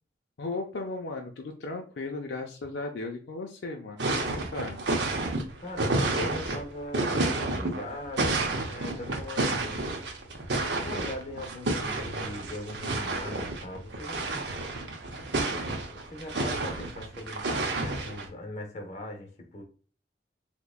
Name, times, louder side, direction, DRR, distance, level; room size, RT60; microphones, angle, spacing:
voice 1, 0.4-4.8, left 3 dB, 80° left, 0.4 m, -36 dB
sound 1, 4.0-18.3, right 2 dB, 75° right, 0.7 m, -30 dB
voice 2, 5.6-9.9 10.8-14.2 15.5-19.6, left 1 dB, 40° left, 0.7 m, -40 dB
3.5 x 2.9 x 2.3 m
head